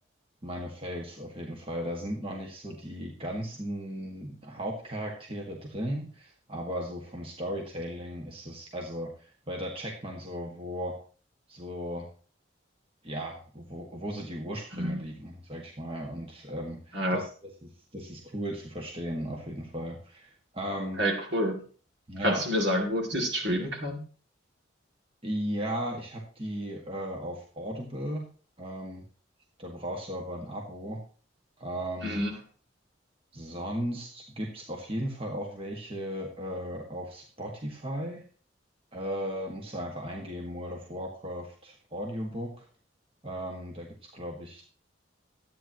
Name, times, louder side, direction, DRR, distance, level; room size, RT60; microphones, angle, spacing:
voice 1, 0.4-10.9 11.5-12.0 13.0-17.2 17.9-21.0 22.1-22.4 25.2-28.3 28.6-29.0 29.6-31.0 31.6-32.4 33.3-38.2 38.9-42.6 43.2-43.9 44.1-44.6, equal, 30° right, 0 dB, 1.8 m, -36 dB
voice 2, 16.9-17.2 21.0-21.6 22.2-24.0 32.0-32.4, equal, 65° right, 2 dB, 2.7 m, -28 dB
13.5 x 9.2 x 3.0 m, 0.40 s
head